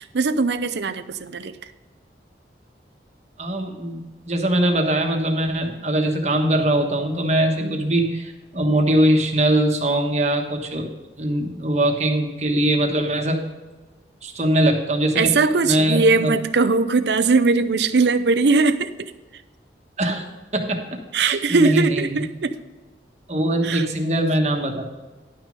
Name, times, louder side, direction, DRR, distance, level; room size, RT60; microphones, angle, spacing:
voice 1, 0.0-1.5 7.6-7.8 15.2-18.9 21.1-22.6 23.6-23.8, right 4 dB, 75° right, 12 dB, 0.6 m, -20 dB
voice 2, 3.4-10.9 11.2-13.4 14.2-15.4 15.6-16.3 20.0-20.2 20.5-20.8 21.2-22.2 23.3-24.8, right 1 dB, 40° right, 3 dB, 1.3 m, -21 dB
11.0 x 6.3 x 5.2 m, 1.2 s
head